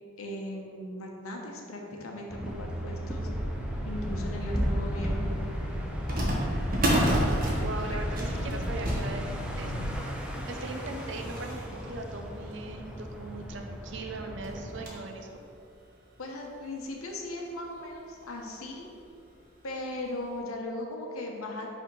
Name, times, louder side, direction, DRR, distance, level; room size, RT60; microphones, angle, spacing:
voice 1, 0.2-3.3 3.8-5.3 7.9-8.0 16.2-18.9 19.6-21.7, left 1 dB, 85° left, 1 dB, 0.9 m, -38 dB
sound 1, 2.3-14.8, equal, 5° right, 0.4 m, -36 dB
sound 2, 3.1-9.9, equal, 40° left, 0.9 m, -36 dB
sound 3, 4.6-4.7 6.1-13.0 13.6-13.7 13.9-14.0 14.4-15.2 15.7-15.8 16.6-16.7 17.1-17.2 18.6-18.8 19.2-19.3 20.0-20.1, right 1 dB, 40° right, 0.9 m, -31 dB
voice 2, 7.6-9.2 9.6-9.8 10.5-15.3, right 3 dB, 55° right, 4 dB, 0.5 m, -39 dB
5.2 x 3.5 x 5.4 m, 2.6 s
head